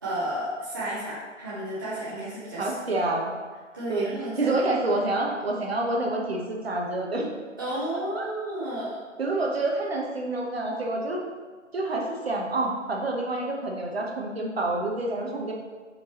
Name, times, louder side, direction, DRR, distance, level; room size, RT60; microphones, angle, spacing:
voice 1, 0.0-2.7 3.7-4.5 7.6-9.0, right 1 dB, 15° right, -10 dB, 0.7 m, -32 dB
voice 2, 2.6-3.3 3.9-4.1 4.4-7.3 8.1-8.3 9.2-11.2 11.7-15.5, right 2 dB, 50° right, -1 dB, 1.2 m, -27 dB
7.7 x 4.6 x 3.0 m, 1.4 s
figure-of-eight pair, 160°, 39 cm